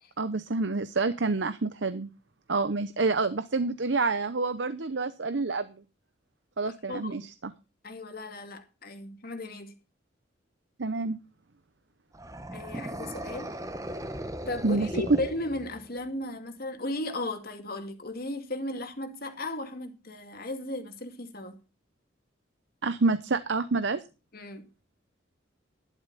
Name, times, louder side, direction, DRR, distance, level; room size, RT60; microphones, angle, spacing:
voice 1, 0.2-2.1 2.5-5.7 6.6-7.5 10.8-11.2 14.6-14.9 22.8-24.0, right 3 dB, 65° right, 0.8 m, -28 dB
voice 2, 6.6-7.3 7.8-9.7 12.5-13.5 14.5-21.6 24.3-24.7, left 2 dB, 50° left, 2.4 m, -36 dB
sound 1, 12.1-16.0, right 1 dB, 15° right, 1.1 m, -38 dB
12.5 x 11.5 x 4.1 m
head